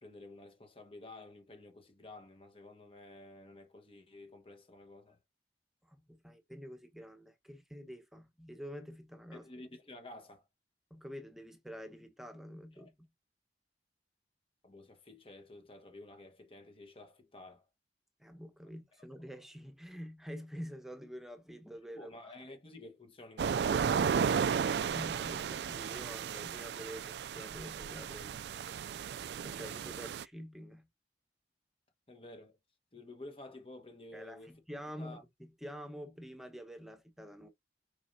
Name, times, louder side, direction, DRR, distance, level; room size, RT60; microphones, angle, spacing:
voice 1, 0.0-5.2 9.3-10.4 12.7-12.9 14.6-17.6 21.9-24.1 32.1-32.6 32.9-34.5 35.0-35.2, left 2 dB, 30° left, 1.3 m, -51 dB
voice 2, 5.8-9.5 10.9-13.1 18.2-22.5 24.7-28.4 29.4-30.9 34.1-37.5, equal, ahead, 1.2 m, -47 dB
sound 1, 23.4-30.2, right 7 dB, 70° right, 0.3 m, -34 dB
6.8 x 5.3 x 2.7 m
head